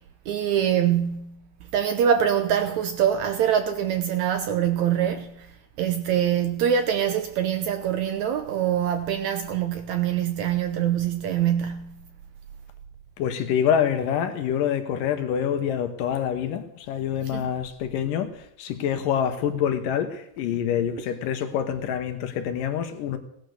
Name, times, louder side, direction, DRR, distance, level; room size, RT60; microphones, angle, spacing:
voice 1, 0.3-1.4 1.7-5.5 5.8-12.0 17.3-17.5, right 9 dB, 75° right, 1.8 m, -24 dB
voice 2, 13.2-23.2, left 9 dB, 75° left, 2.7 m, -26 dB
17.0 x 9.4 x 6.5 m
omnidirectional pair, 4.0 m